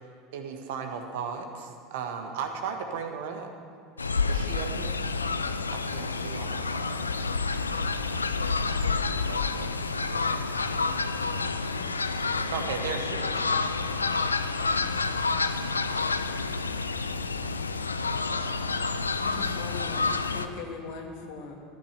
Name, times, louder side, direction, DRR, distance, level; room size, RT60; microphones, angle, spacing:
voice 1, 0.3-3.5 4.3-5.0 5.7-7.0 12.5-13.4, right 6 dB, 60° right, 5 dB, 1.5 m, -35 dB
Fowl, 4.0-20.5, left 4 dB, 80° left, 0.5 m, -29 dB
voice 2, 8.4-11.9 12.2-12.6, right 3 dB, 80° right, 11 dB, 0.5 m, -47 dB
voice 3, 19.2-21.6, left 4 dB, 55° left, 2 dB, 2.1 m, -40 dB
13.5 x 10.0 x 6.7 m, 2.5 s
figure-of-eight pair, 75°, 0 cm